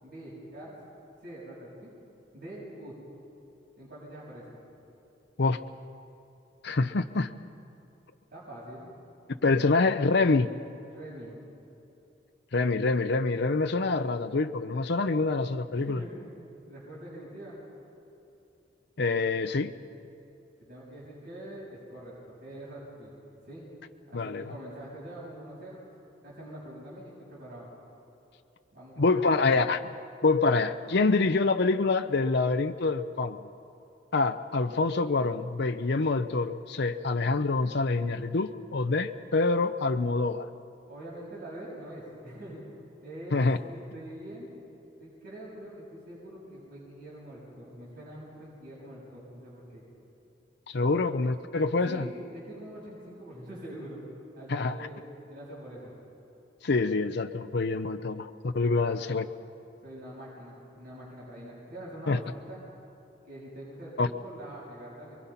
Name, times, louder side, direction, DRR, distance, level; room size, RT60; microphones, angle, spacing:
voice 1, 0.0-0.7 1.2-1.9 2.3-3.0 3.8-4.6 8.3-8.9 10.9-11.3 15.7-16.1 16.7-17.6 20.6-22.2 22.4-23.1 23.5-23.7 24.1-25.8 26.2-27.7 28.7-29.2 40.9-42.6 43.0-44.5 45.0-49.8 50.8-51.0 51.8-54.0 54.3-55.9 58.7-59.0 59.8-62.6 63.3-65.2, right 1 dB, 50° right, -7 dB, 7.3 m, -44 dB
voice 2, 6.6-7.3 9.4-10.5 12.5-16.0 19.0-19.7 24.1-24.5 29.0-29.8 30.2-33.5 34.1-40.5 43.3-43.6 50.7-52.0 54.5-54.8 56.6-59.3 62.1-62.2 64.0-64.1, left 3 dB, 65° left, 8 dB, 0.7 m, -26 dB
27.5 x 23.0 x 5.8 m, 2.8 s
head